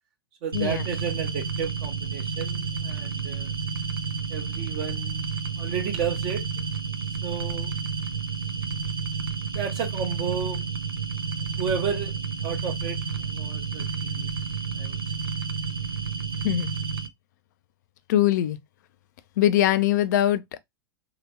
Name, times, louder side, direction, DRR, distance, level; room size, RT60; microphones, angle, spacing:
voice 1, 0.4-3.5 4.3-6.4 7.2-7.7 9.5-10.7 11.6-14.3 14.8-15.0, right 7 dB, 40° right, 0.8 m, -32 dB
sound 1, 0.5-17.1, right 5 dB, 80° right, 0.5 m, -30 dB
voice 2, 18.1-18.6 19.4-20.6, left 12 dB, 50° left, 0.5 m, -22 dB
3.3 x 2.9 x 2.7 m
figure-of-eight pair, 95°, 12 cm